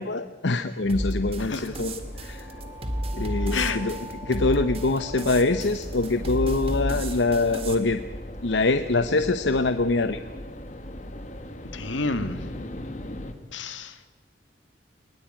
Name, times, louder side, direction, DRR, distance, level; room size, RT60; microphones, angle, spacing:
voice 1, 0.0-2.5 3.1-4.0 4.2-8.0 8.4-10.2, left 3 dB, 75° left, 10 dB, 0.9 m, -24 dB
sound 1, 0.8-13.3, left 1 dB, 40° left, 1.8 m, -39 dB
sound 2, 0.9-7.7, right 1 dB, 30° right, 2.0 m, -32 dB
voice 2, 1.4-1.7 3.5-3.8 11.7-12.5 13.5-14.0, left 3 dB, 90° left, 10 dB, 1.9 m, -29 dB
sound 3, 2.0-7.2, left 1 dB, 65° right, 6.0 m, -45 dB
22.0 x 21.0 x 9.0 m, 1.2 s
head